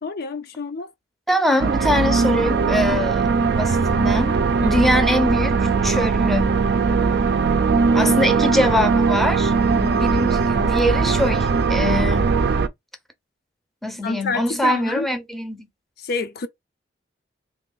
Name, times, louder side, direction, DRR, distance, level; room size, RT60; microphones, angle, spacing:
voice 1, 0.0-0.9 4.6-4.9 8.0-8.3 14.0-15.1 16.0-16.5, left 4 dB, 55° left, 0.4 m, -28 dB
voice 2, 1.3-4.4 4.6-6.5 7.9-12.3 13.8-15.7, left 1 dB, ahead, 0.6 m, -23 dB
sound 1, 1.6-12.7, right 5 dB, 60° right, 0.4 m, -19 dB
3.2 x 2.5 x 3.8 m
head